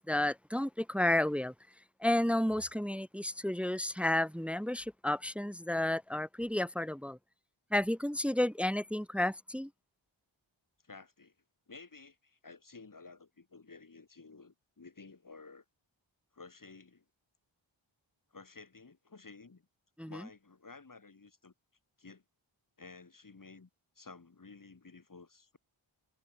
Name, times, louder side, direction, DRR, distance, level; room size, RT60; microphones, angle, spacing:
voice 1, 0.1-1.5 2.0-7.2 7.7-9.7 20.0-20.3, left 1 dB, 5° right, 0.6 m, -31 dB
voice 2, 10.8-11.3 11.7-15.6 16.3-17.0 18.3-19.7 20.1-21.5 22.0-22.2 22.8-23.7 23.9-25.6, left 4 dB, 45° left, 6.8 m, -53 dB
wide cardioid pair, 110°, 46 cm